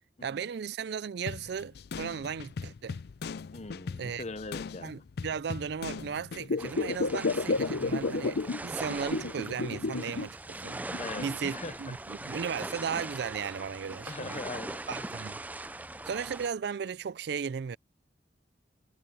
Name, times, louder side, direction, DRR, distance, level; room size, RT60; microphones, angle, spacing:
voice 1, 0.2-3.0 4.0-4.2 4.8-14.4 14.9-15.4 16.1-17.8, right 6 dB, 65° right, 0.4 m, -36 dB
sound 1, 1.3-6.5, left 5 dB, 60° left, 0.4 m, -40 dB
voice 2, 3.5-5.0 11.0-11.9 14.1-14.8, left 3 dB, 40° left, 0.9 m, -41 dB
sound 2, 6.4-8.6 8.9-10.3 10.6-11.6 12.2-12.3, left 3 dB, 85° left, 0.8 m, -31 dB
sound 3, 6.6-16.5, right 2 dB, 10° right, 0.5 m, -41 dB
head